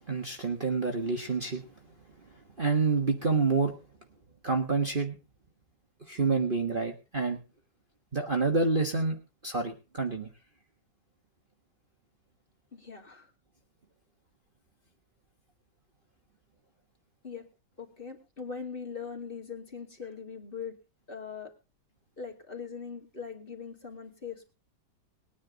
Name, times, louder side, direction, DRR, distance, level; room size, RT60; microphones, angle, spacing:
voice 1, 0.1-1.6 2.6-3.7 4.4-5.1 6.1-7.4 8.1-9.2 9.4-10.3, right 4 dB, 30° right, 3 dB, 1.4 m, -28 dB
voice 2, 12.7-13.3 17.2-17.5 17.8-20.8 21.1-21.5 22.2-24.5, left 6 dB, 30° left, 2 dB, 2.6 m, -41 dB
20.5 x 9.8 x 3.9 m, 0.32 s
omnidirectional pair, 1.9 m